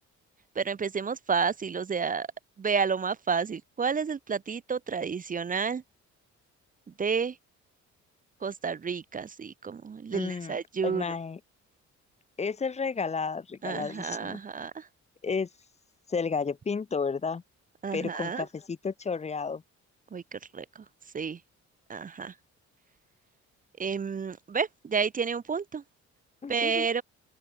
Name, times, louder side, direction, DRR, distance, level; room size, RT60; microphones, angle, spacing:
voice 1, 0.6-2.3 2.6-5.8 7.0-7.4 8.4-11.1 13.6-14.9 17.8-18.5 20.1-20.8 21.1-21.4 21.9-22.3 23.8-25.8 26.5-27.0, right 5 dB, 30° right, 0.6 m, -30 dB
voice 2, 10.1-11.4 12.4-14.4 15.2-15.5 16.1-17.4 17.9-19.6 26.4-26.9, left 5 dB, 20° left, 0.6 m, -32 dB
open air
cardioid pair, 90°, 30 cm